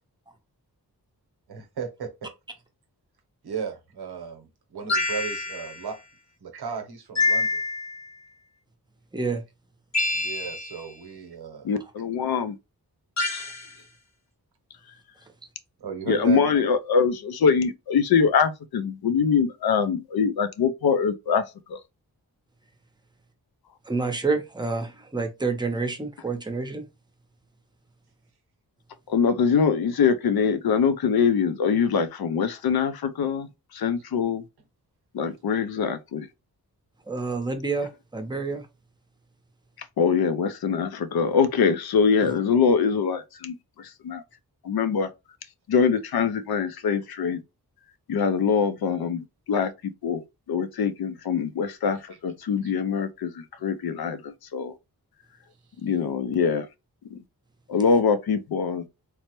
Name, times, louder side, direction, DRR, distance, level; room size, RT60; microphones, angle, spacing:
voice 1, 1.5-2.3 3.4-6.0 6.4-7.6 10.1-11.7 13.6-13.7 15.8-16.4 52.6-52.7, right 6 dB, 85° right, 0.8 m, -35 dB
sound 1, 4.9-5.9 7.2-8.1 9.9-10.8 13.2-13.7, left 3 dB, 45° left, 0.8 m, -26 dB
voice 2, 11.6-12.6 13.3-13.5 16.1-21.4 21.7-21.8 29.1-34.4 35.1-36.3 39.8-44.2 44.6-45.1 45.7-47.4 48.1-54.7 55.8-56.7 57.1-57.2 57.7-58.8, left 6 dB, 75° left, 0.5 m, -24 dB
voice 3, 23.9-26.8 37.1-38.7, right 3 dB, 10° right, 0.6 m, -28 dB
3.3 x 2.0 x 2.9 m
wide cardioid pair, 70°, 38 cm